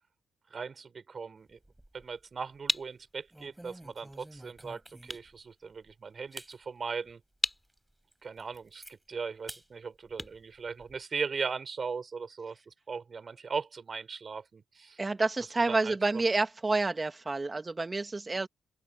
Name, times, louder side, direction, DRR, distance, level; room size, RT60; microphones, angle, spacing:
voice 1, 0.5-1.6 1.9-7.2 8.2-15.0 15.7-16.0, right 5 dB, 45° right, 5.8 m, -38 dB
sound 1, 1.5-2.2 2.6-2.8 3.3-5.4 5.9-6.0 6.3-6.6 7.1-7.2 7.7-7.8 8.1-8.9 9.5-9.7 10.0-11.0, right 1 dB, 10° right, 6.1 m, -50 dB
sound 2, 2.0-11.4, left 1 dB, 10° left, 2.9 m, -40 dB
voice 2, 15.0-18.5, right 3 dB, 25° right, 2.3 m, -29 dB
open air
cardioid pair, 65°, 0 cm